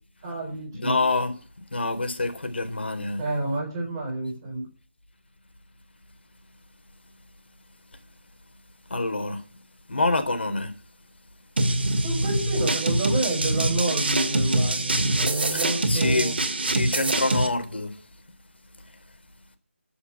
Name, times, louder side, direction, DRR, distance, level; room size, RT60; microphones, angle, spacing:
voice 1, 0.2-1.0 3.2-4.7 12.0-16.3, right 2 dB, 15° right, 4.2 m, -29 dB
voice 2, 0.7-1.4 1.7-3.2 8.9-9.4 9.9-10.7 15.5-16.3 16.7-18.0, left 2 dB, 55° left, 3.9 m, -26 dB
sound 1, 11.6-17.5, right 2 dB, 50° right, 2.4 m, -24 dB
13.5 x 7.1 x 9.8 m
figure-of-eight pair, 165°, 7 cm